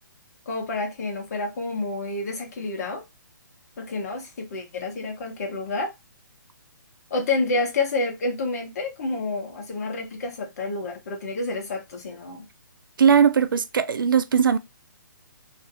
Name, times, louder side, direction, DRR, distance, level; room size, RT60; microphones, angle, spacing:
voice 1, 0.5-3.0 3.8-5.9 7.1-12.5, left 3 dB, 50° left, 1.0 m, -29 dB
voice 2, 13.0-14.6, right 7 dB, 90° right, 0.4 m, -19 dB
2.5 x 2.0 x 2.7 m
hypercardioid pair, 160°, 11 cm